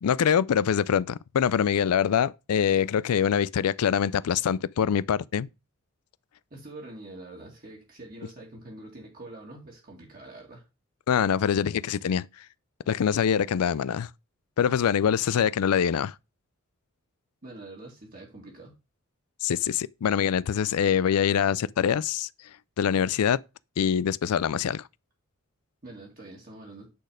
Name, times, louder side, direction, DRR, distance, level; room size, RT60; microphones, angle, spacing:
voice 1, 0.0-5.5 11.1-12.3 12.9-14.1 14.6-16.1 19.4-22.3 22.8-23.4 23.8-24.8, left 8 dB, 85° left, 0.4 m, -24 dB
voice 2, 6.5-10.7 17.4-18.7 25.8-26.9, right 2 dB, 40° right, 2.2 m, -45 dB
8.7 x 4.2 x 5.0 m
head